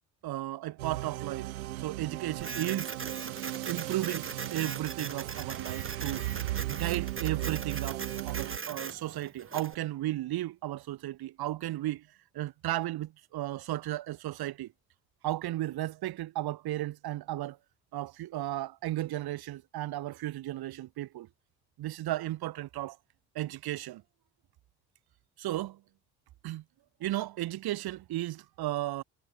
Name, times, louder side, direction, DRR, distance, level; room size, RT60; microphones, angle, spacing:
voice 1, 0.2-2.9 3.7-6.3 6.7-12.1 12.3-14.7 15.2-17.6 17.9-21.3 21.8-23.0 23.3-24.0 25.4-25.8 26.4-26.6 27.0-29.0, right 15 dB, 60° right, 2.7 m, -34 dB
sound 1, 0.8-8.6, right 16 dB, 80° right, 1.2 m, -36 dB
Printer, 2.4-9.8, right 4 dB, 30° right, 4.9 m, -40 dB
hypercardioid pair, 50°, 42 cm